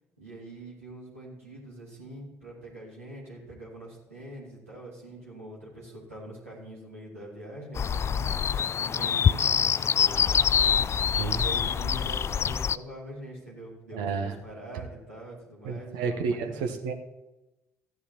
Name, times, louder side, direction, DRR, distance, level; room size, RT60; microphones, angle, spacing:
voice 1, 0.2-8.3 8.8-9.5 10.0-10.9 11.4-16.7, right 1 dB, 90° right, -7 dB, 2.6 m, -43 dB
sound 1, 7.8-12.8, left 7 dB, 35° left, 0.3 m, -25 dB
voice 2, 13.9-14.3 15.6-16.9, right 5 dB, 65° right, 5 dB, 1.0 m, -30 dB
14.5 x 10.5 x 2.9 m, 1.0 s
figure-of-eight pair, 45°, 8 cm